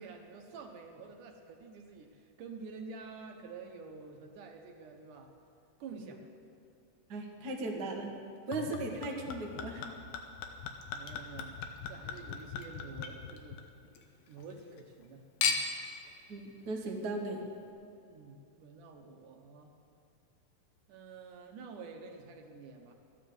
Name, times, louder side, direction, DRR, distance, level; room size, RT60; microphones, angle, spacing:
voice 1, 0.0-5.3 5.8-6.2 10.9-11.5 11.9-13.6 14.3-15.6 18.0-19.7 20.9-22.9, right 4 dB, 70° right, 3 dB, 2.3 m, -49 dB
voice 2, 7.1-8.1 8.5-9.9 16.3-17.4, right 2 dB, 50° right, 0 dB, 1.2 m, -37 dB
Chink clink / Liquid, 8.5-14.0 14.4-15.0 15.4-15.9 16.7-16.8, left 5 dB, 85° left, 2.7 m, -38 dB
13.5 x 10.0 x 7.8 m, 2.6 s
omnidirectional pair, 4.1 m